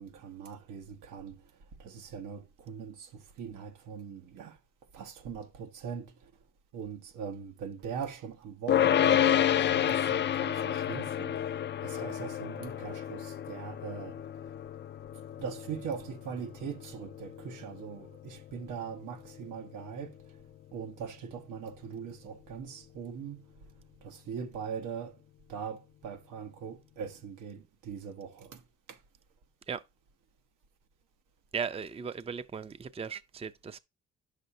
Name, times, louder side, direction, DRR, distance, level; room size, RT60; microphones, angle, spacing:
voice 1, 0.0-1.4 1.8-4.6 4.9-6.3 6.7-11.4 11.8-14.2 15.3-20.1 20.7-23.4 24.0-25.2 25.5-28.6 28.9-29.0, right 7 dB, 85° right, 1.2 m, -41 dB
sound 1, 8.7-20.0, left 10 dB, 40° left, 0.4 m, -30 dB
voice 2, 31.5-33.8, right 6 dB, 20° right, 0.5 m, -37 dB
10.0 x 6.6 x 2.7 m
cardioid pair, 90°, 30 cm